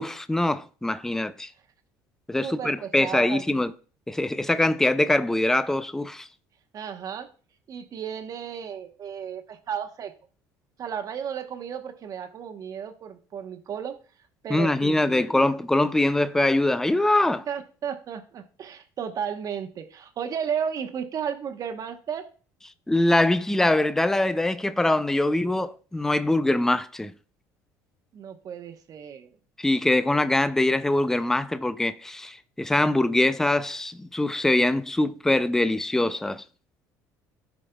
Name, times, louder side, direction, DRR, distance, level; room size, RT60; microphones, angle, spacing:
voice 1, 0.0-1.5 2.3-3.7 4.1-6.3 14.5-17.4 22.9-27.1 29.6-36.4, left 2 dB, 5° left, 0.4 m, -23 dB
voice 2, 2.4-3.4 6.7-7.3 7.7-10.1 10.8-14.0 14.4-15.3 17.5-22.3 28.1-29.3, right 8 dB, 45° right, 1.0 m, -34 dB
13.5 x 5.1 x 2.3 m
supercardioid pair, 95°, 8 cm